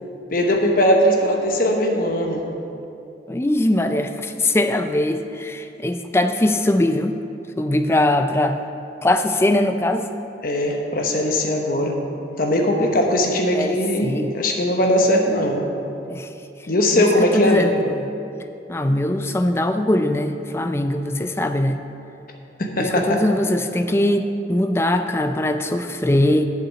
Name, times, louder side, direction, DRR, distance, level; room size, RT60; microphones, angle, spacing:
voice 1, 0.3-2.4 10.4-12.0 12.4-15.6 16.7-17.7 22.6-23.2, left 1 dB, 50° left, 2 dB, 1.0 m, -20 dB
voice 2, 3.3-7.2 7.6-8.6 9.0-10.1 13.5-14.4 16.1-16.3 17.0-18.1 18.7-21.8 22.8-26.5, left 1 dB, 15° left, 7 dB, 0.4 m, -21 dB
7.7 x 5.9 x 7.6 m, 2.7 s
head